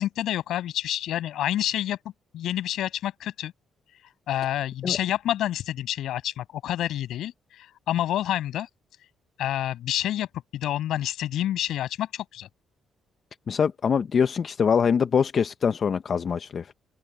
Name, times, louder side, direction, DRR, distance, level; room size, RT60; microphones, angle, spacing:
voice 1, 0.0-2.0 2.3-3.5 4.3-8.7 9.4-12.5, left 12 dB, 80° left, 7.3 m, -28 dB
voice 2, 13.5-16.7, left 6 dB, 50° left, 0.7 m, -24 dB
open air
cardioid pair, 90°, 0 cm